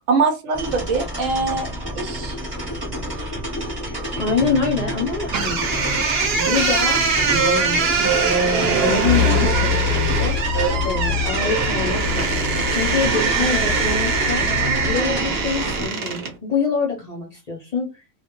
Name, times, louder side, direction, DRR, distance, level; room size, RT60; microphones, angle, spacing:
voice 1, 0.1-1.7 1.9-2.4, right 4 dB, 90° right, 6 dB, 1.1 m, -22 dB
sound 1, 0.5-15.9, equal, 20° right, 0.8 m, -29 dB
voice 2, 3.9-6.0 6.3-8.5 8.8-10.4 10.8-14.5 14.8-17.9, left 5 dB, 45° left, -2 dB, 0.5 m, -26 dB
sound 2, 5.3-16.4, right 5 dB, 60° right, 0.8 m, -22 dB
sound 3, 9.0-15.0, left 10 dB, 90° left, 1.0 m, -26 dB
2.2 x 2.1 x 2.9 m, 0.28 s
omnidirectional pair, 1.3 m